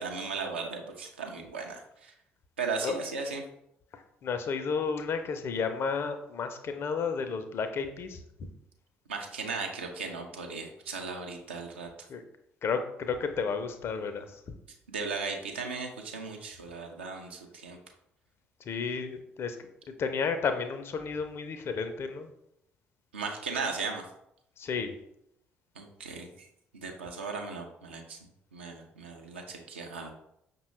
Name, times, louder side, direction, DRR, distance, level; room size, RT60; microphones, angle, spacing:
voice 1, 0.0-2.1 2.6-3.4 9.1-11.9 14.9-17.8 23.1-24.1 25.8-26.5 26.7-28.2 28.5-30.1, right 4 dB, 80° right, 2 dB, 0.5 m, -36 dB
voice 2, 3.9-8.2 12.1-12.2 12.6-14.4 18.7-19.6 20.0-22.3 24.6-24.9, left 5 dB, 45° left, 8 dB, 0.5 m, -32 dB
5.3 x 2.2 x 3.1 m, 0.78 s
figure-of-eight pair, 50°, 6 cm